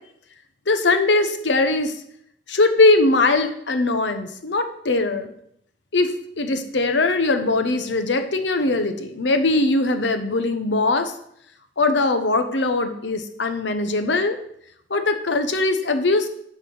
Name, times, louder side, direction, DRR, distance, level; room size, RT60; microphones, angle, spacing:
voice 1, 0.7-2.0 2.5-5.3 5.9-11.1 11.8-14.4 14.9-16.3, left 2 dB, 85° left, 8 dB, 1.0 m, -21 dB
11.0 x 4.4 x 6.1 m, 0.72 s
head